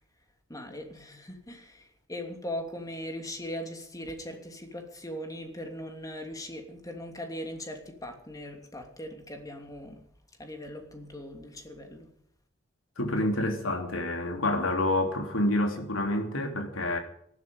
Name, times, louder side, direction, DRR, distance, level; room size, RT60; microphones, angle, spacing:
voice 1, 0.5-10.0 10.4-12.1, left 1 dB, 20° left, 2.9 m, -40 dB
voice 2, 13.0-17.0, left 1 dB, 85° left, 3.3 m, -28 dB
18.5 x 12.5 x 5.4 m
head